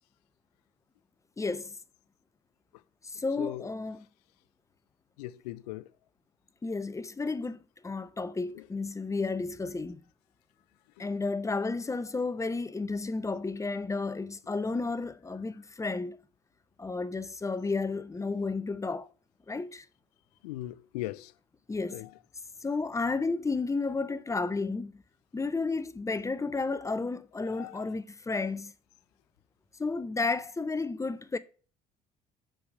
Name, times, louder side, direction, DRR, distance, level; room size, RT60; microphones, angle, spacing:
voice 1, 1.4-1.7 3.2-4.1 6.6-7.6 7.8-10.0 11.0-16.2 16.8-19.1 19.5-19.8 21.7-22.0 22.6-24.9 25.3-28.7 29.8-31.4, left 3 dB, 15° left, 0.5 m, -32 dB
voice 2, 3.4-3.7 5.2-5.9 8.5-8.7 20.4-21.3 21.9-22.1 27.4-27.9, left 16 dB, 75° left, 0.4 m, -39 dB
6.8 x 3.4 x 5.3 m
figure-of-eight pair, 50°, 21 cm